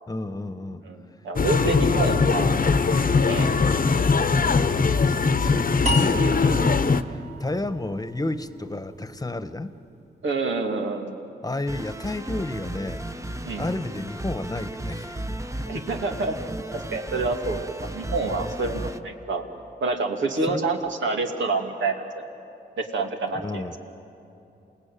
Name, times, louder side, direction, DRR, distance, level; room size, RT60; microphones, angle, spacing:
voice 1, 0.1-0.8 1.9-2.0 5.0-9.7 11.4-13.0 13.4-15.2 15.7-15.9 20.4-20.6 23.4-23.8, left 2 dB, 20° left, 11 dB, 1.3 m, -32 dB
voice 2, 0.8-2.5 2.8-3.5 10.2-11.2 13.4-13.7 15.7-16.4 16.7-19.5 19.8-22.0 22.8-23.8, right 3 dB, 75° right, 2 dB, 2.6 m, -27 dB
sound 1, 1.4-7.0, left 4 dB, 45° left, 1.1 m, -21 dB
sound 2, 5.9-9.0, equal, 35° right, 2.4 m, -32 dB
sound 3, 11.7-19.0, right 1 dB, 15° right, 1.1 m, -34 dB
28.0 x 18.5 x 9.2 m, 2.9 s
cardioid pair, 50°, 19 cm